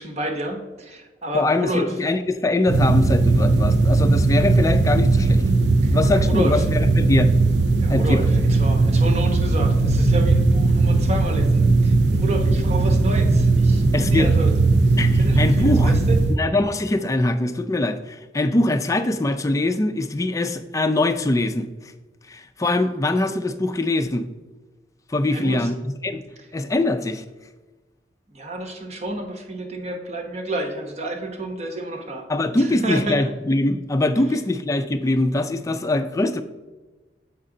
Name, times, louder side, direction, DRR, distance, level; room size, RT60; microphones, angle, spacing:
voice 1, 0.0-1.9 5.8-6.0 6.2-6.7 7.8-14.5 14.9-16.2 25.3-25.7 28.3-33.2, right 1 dB, 40° right, 4 dB, 1.0 m, -30 dB
voice 2, 1.3-5.4 5.9-7.3 7.9-8.2 13.9-14.3 15.0-15.9 16.3-21.9 22.3-24.3 25.1-26.2 26.5-27.2 32.3-36.4, left 2 dB, 20° left, 7 dB, 0.4 m, -22 dB
sound 1, 2.7-16.4, right 3 dB, 75° right, 0.6 m, -18 dB
7.3 x 5.5 x 3.8 m, 1.2 s
head